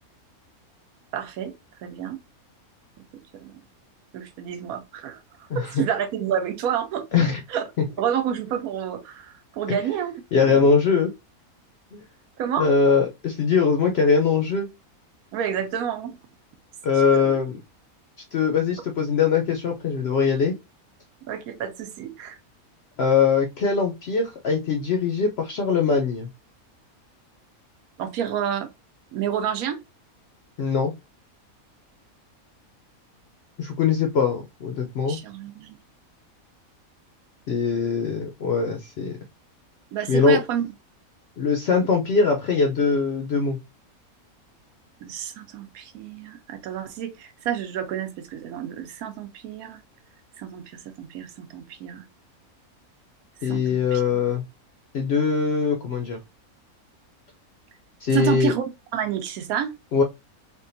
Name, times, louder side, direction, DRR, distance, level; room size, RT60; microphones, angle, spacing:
voice 1, 1.1-1.5 1.8-2.2 3.4-3.5 4.1-5.2 5.5-7.1 7.5-7.6 8.0-10.7 12.4-12.7 15.3-16.1 17.1-17.3 21.3-22.4 28.0-28.7 29.1-29.8 35.1-35.8 39.9-40.6 45.0-49.8 50.4-52.0 53.5-54.0 58.1-58.6 58.9-59.7, right 9 dB, 80° right, 1.1 m, -29 dB
voice 2, 5.5-5.8 7.1-7.4 7.8-7.9 9.7-9.8 10.3-11.1 11.9-12.0 12.6-14.7 16.8-17.6 18.3-20.6 23.0-26.3 30.6-30.9 33.6-35.2 37.5-39.2 40.1-40.4 41.4-43.6 53.4-54.4 54.9-56.2 58.0-58.5 59.9-60.0, left 5 dB, 70° left, 0.6 m, -22 dB
3.5 x 2.2 x 2.5 m
omnidirectional pair, 1.5 m